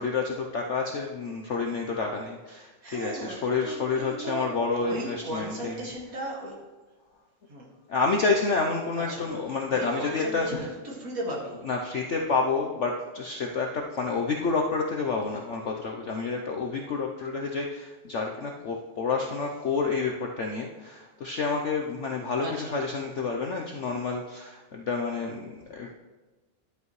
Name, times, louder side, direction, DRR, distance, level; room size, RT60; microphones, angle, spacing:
voice 1, 0.0-5.9 7.9-10.5 11.6-25.9, left 4 dB, 60° left, 1 dB, 0.8 m, -29 dB
voice 2, 2.5-4.5 4.8-6.6 7.5-7.7 8.9-9.3 9.7-11.6 19.2-19.3 22.4-22.7, right 1 dB, 50° right, -2 dB, 2.3 m, -36 dB
11.5 x 8.2 x 3.1 m, 1.2 s
omnidirectional pair, 1.9 m